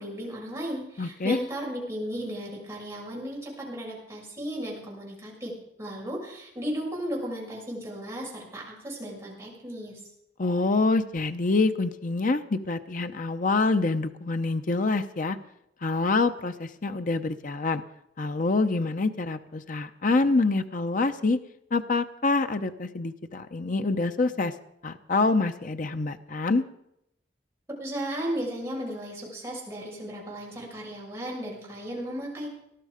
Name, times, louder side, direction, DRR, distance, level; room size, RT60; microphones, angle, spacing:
voice 1, 0.0-5.5 5.8-10.0 27.8-32.5, equal, 15° right, -4 dB, 6.5 m, -35 dB
voice 2, 1.0-1.4 10.4-15.4 15.8-17.8 18.2-21.4 21.7-24.5 24.8-26.6, left 3 dB, 50° left, 9 dB, 0.7 m, -26 dB
19.0 x 12.5 x 5.0 m, 0.78 s
head